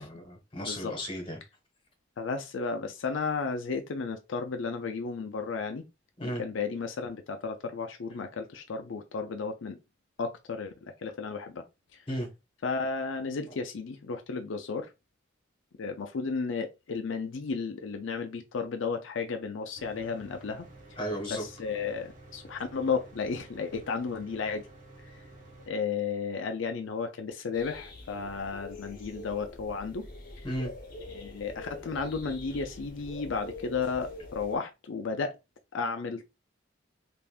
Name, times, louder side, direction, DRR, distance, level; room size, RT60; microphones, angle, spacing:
voice 1, 0.0-1.4 6.2-6.4 12.1-12.3 21.0-21.4 30.4-30.7, equal, 30° left, 1.2 m, -34 dB
voice 2, 0.6-0.9 2.2-5.8 6.2-9.8 10.2-11.6 12.6-14.9 15.8-20.7 21.3-24.7 25.1-25.2 25.7-30.1 31.1-35.3 35.7-36.3, left 5 dB, 85° left, 0.5 m, -33 dB
Mechanical fan, 19.7-25.7, right 2 dB, 40° right, 0.9 m, -51 dB
sound 1, 27.5-34.6, left 2 dB, 50° left, 0.8 m, -45 dB
3.4 x 2.6 x 2.3 m
head